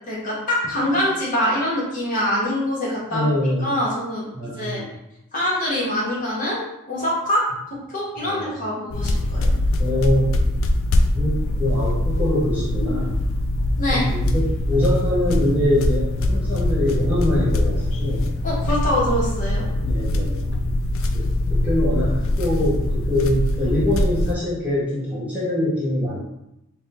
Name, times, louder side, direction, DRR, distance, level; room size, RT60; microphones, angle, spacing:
voice 1, 0.1-3.3 3.6-4.8 5.3-6.6 6.9-7.4 7.7-9.5 13.8-14.1 18.4-19.6, left 1 dB, 35° left, -6 dB, 1.2 m, -24 dB
voice 2, 3.1-3.7 4.3-4.9 8.2-8.6 9.8-10.4 11.1-13.2 13.9-18.3 19.8-20.5 21.1-26.2, left 1 dB, 5° right, -9 dB, 0.8 m, -24 dB
sound 1, 8.9-24.3, left 1 dB, 65° left, 0.3 m, -22 dB
3.5 x 2.3 x 4.1 m, 0.86 s
head